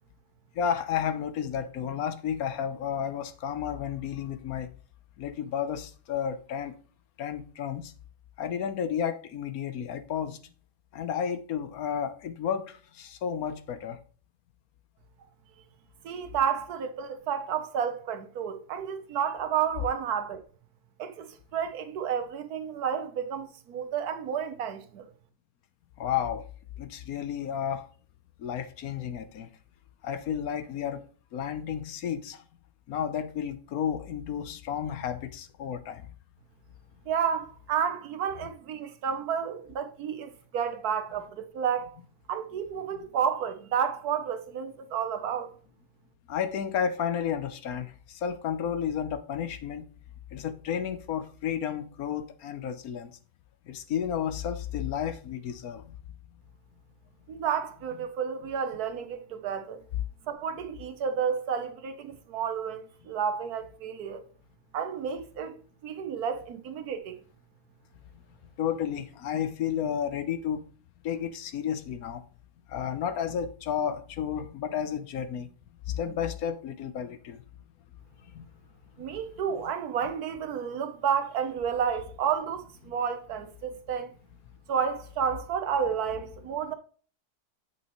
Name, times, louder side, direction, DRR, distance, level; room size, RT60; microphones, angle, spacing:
voice 1, 0.6-4.7 5.2-6.7 7.2-7.9 8.4-10.4 10.9-14.0 26.0-26.4 26.8-27.8 28.4-29.5 30.0-31.0 31.3-32.4 32.9-36.1 46.3-49.9 50.3-53.1 53.7-55.9 59.9-60.0 68.6-70.6 71.0-72.2 72.7-75.5 75.9-77.4 78.3-78.4, left 8 dB, 65° left, 1.2 m, -32 dB
voice 2, 16.0-20.4 21.0-25.1 37.1-42.0 42.3-45.5 57.3-59.8 60.3-64.2 64.7-65.6 65.8-67.2 79.0-84.1 84.7-86.7, right 7 dB, 70° right, 1.3 m, -31 dB
8.2 x 6.1 x 3.0 m
omnidirectional pair, 1.7 m